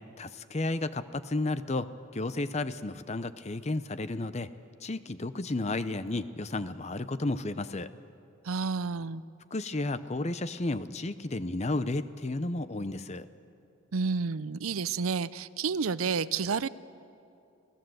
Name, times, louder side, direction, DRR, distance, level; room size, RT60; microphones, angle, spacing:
voice 1, 0.2-4.5 4.8-7.9 9.5-13.3, left 2 dB, 30° left, 13 dB, 0.6 m, -32 dB
voice 2, 8.4-9.2 13.9-16.7, right 5 dB, 85° right, 17 dB, 0.6 m, -30 dB
28.5 x 16.5 x 7.8 m, 2.7 s
head